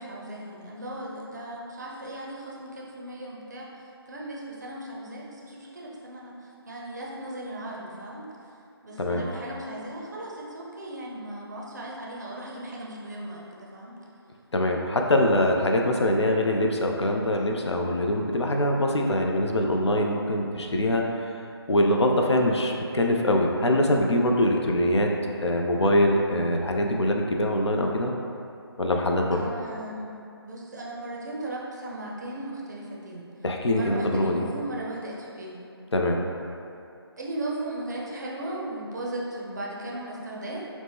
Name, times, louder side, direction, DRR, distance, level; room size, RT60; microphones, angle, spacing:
voice 1, 0.0-3.7 4.1-8.3 8.8-14.0 29.3-30.1 30.4-33.3 33.7-35.6 37.2-40.7, right 1 dB, 40° right, -4 dB, 0.5 m, -37 dB
voice 2, 14.5-21.2 21.7-25.1 25.4-28.1 28.8-29.4 33.4-34.4 35.9-36.2, left 1 dB, 85° left, 1 dB, 0.4 m, -23 dB
3.0 x 2.0 x 3.4 m, 2.6 s
figure-of-eight pair, 150°, 14 cm